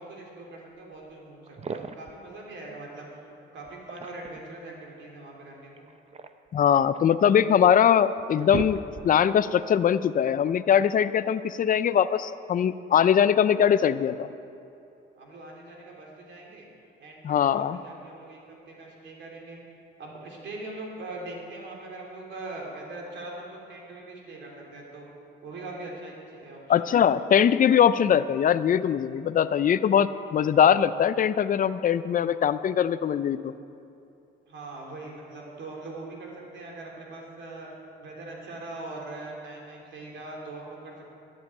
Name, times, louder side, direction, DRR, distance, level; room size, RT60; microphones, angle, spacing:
voice 1, 0.0-3.2 3.5-5.9 15.2-16.7 17.0-19.6 20.0-25.1 25.4-27.3 34.5-37.7 38.0-41.0, right 2 dB, 70° right, -1 dB, 3.2 m, -41 dB
sound 1, 1.5-2.2 3.6-4.5 5.8-7.1 7.7-7.8 8.2-9.3, right 5 dB, 30° right, 0.7 m, -37 dB
voice 2, 6.5-14.3 17.2-17.8 26.7-33.5, left 8 dB, 45° left, 14 dB, 0.5 m, -22 dB
12.0 x 7.5 x 8.8 m, 2.8 s
cardioid pair, 90°, 20 cm